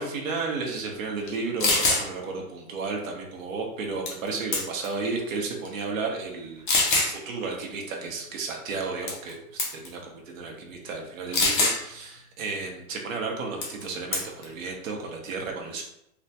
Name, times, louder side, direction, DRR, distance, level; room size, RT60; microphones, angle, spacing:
voice 1, 0.0-6.7 6.9-15.8, right 4 dB, 60° right, 0 dB, 0.7 m, -33 dB
sound 1, 1.3-1.4 1.6-2.0 4.1-4.3 4.5-4.9 5.6-5.7 6.7-7.1 9.1-9.3 9.6-9.9 11.3-11.8 13.6-13.8 14.1-14.4, left 3 dB, 35° left, 0.5 m, -23 dB
3.3 x 2.1 x 2.7 m, 0.80 s
hypercardioid pair, 165°, 46 cm